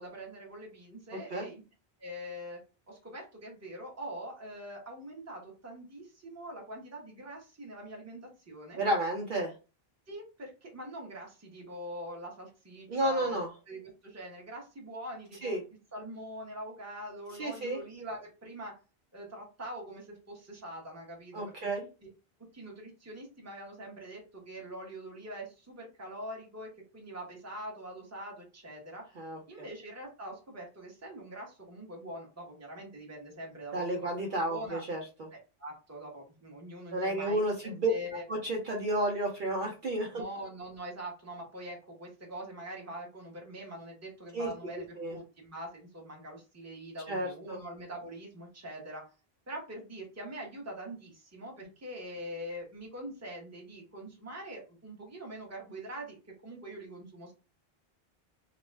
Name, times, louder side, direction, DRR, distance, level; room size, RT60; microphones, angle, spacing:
voice 1, 0.0-1.6 2.0-2.6 2.9-8.8 10.1-13.4 13.7-15.5 15.9-18.8 19.1-21.4 22.5-29.0 29.5-34.1 34.4-34.8 35.6-38.2 40.1-49.0 49.5-56.2 56.4-57.3, right 1 dB, 15° right, 0 dB, 0.7 m, -43 dB
voice 2, 8.8-9.5 12.9-13.5 15.4-15.6 17.4-17.8 21.3-21.8 29.2-29.4 33.7-35.0 36.9-37.9 38.3-40.2 44.3-45.2 47.1-47.6, right 1 dB, 60° right, 0 dB, 0.7 m, -31 dB
2.4 x 2.0 x 3.2 m, 0.31 s
omnidirectional pair, 1.0 m